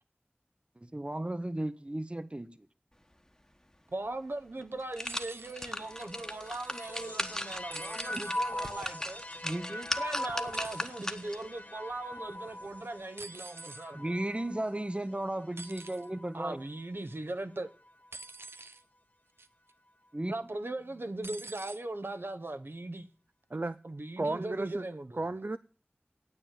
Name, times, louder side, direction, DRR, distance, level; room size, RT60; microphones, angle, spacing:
voice 1, 0.8-2.5 9.4-9.8 13.9-16.6 20.1-20.3, right 1 dB, 30° right, 0.8 m, -35 dB
voice 2, 3.9-9.4 9.7-14.2 16.3-17.7 20.3-23.1 23.8-25.2, right 2 dB, 70° right, 1.0 m, -39 dB
sound 1, 4.1-4.2 4.6-11.5 11.9-12.0, left 1 dB, 15° left, 1.2 m, -38 dB
sound 2, 5.1-5.5 7.7-8.4 10.5-10.9 13.2-13.9 15.6-16.1 18.1-18.8 19.4-19.7 21.2-21.8 22.8-22.9, right 3 dB, 85° right, 0.7 m, -46 dB
sound 3, 5.4-16.9 17.7-18.4, left 1 dB, 45° left, 1.7 m, -42 dB
voice 3, 24.2-24.9 25.2-25.6, right 2 dB, 50° right, 0.5 m, -33 dB
9.6 x 8.9 x 7.5 m
wide cardioid pair, 50°, 4 cm